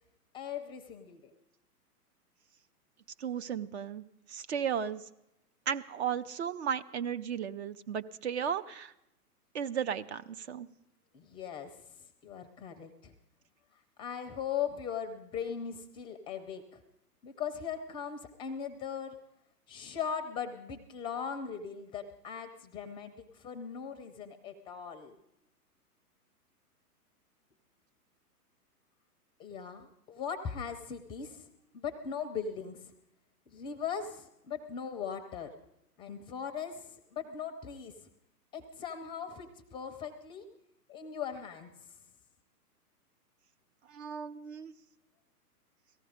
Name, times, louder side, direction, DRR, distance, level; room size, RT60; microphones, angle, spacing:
voice 1, 0.3-1.3 11.1-11.8 12.2-13.1 14.0-16.8 17.2-19.2 19.7-25.2 29.4-31.5 31.7-32.9 33.5-35.6 36.0-38.0 38.5-40.5 40.9-41.7, left 7 dB, 10° left, 8 dB, 0.6 m, -39 dB
voice 2, 3.2-5.1 5.7-8.9 9.5-10.7 43.9-44.7, right 8 dB, 45° right, 11 dB, 0.6 m, -35 dB
18.0 x 14.5 x 5.0 m, 0.84 s
figure-of-eight pair, 120°, 47 cm